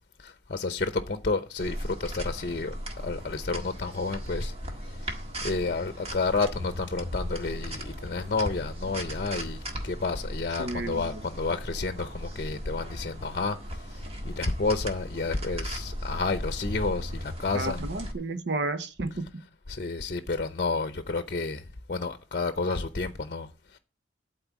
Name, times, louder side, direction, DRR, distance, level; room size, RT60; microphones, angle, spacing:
voice 1, 0.2-2.7 3.0-4.5 5.4-14.0 14.2-17.8 19.7-21.6 21.9-23.8, left 3 dB, 50° left, 0.7 m, -30 dB
sound 1, 1.6-18.1, equal, 35° right, 1.7 m, -37 dB
voice 2, 10.6-11.2 17.5-19.4, right 2 dB, 75° right, 0.9 m, -32 dB
12.0 x 4.3 x 8.2 m
head